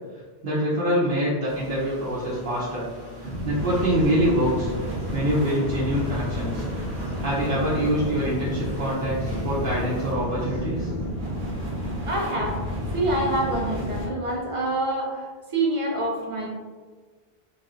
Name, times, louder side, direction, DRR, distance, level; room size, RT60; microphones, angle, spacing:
voice 1, 0.4-2.8 3.2-4.7 5.1-6.7 7.2-10.9, equal, 65° right, -8 dB, 0.8 m, -25 dB
sound 1, 1.5-10.1, equal, 25° left, 0.7 m, -42 dB
sound 2, 3.2-14.1, equal, 85° right, 1.1 m, -31 dB
sound 3, 3.5-11.5, equal, 80° left, 1.3 m, -43 dB
voice 2, 12.0-12.6 12.9-16.5, right 1 dB, 45° right, -2 dB, 0.5 m, -26 dB
3.0 x 2.8 x 2.4 m, 1.4 s
omnidirectional pair, 1.0 m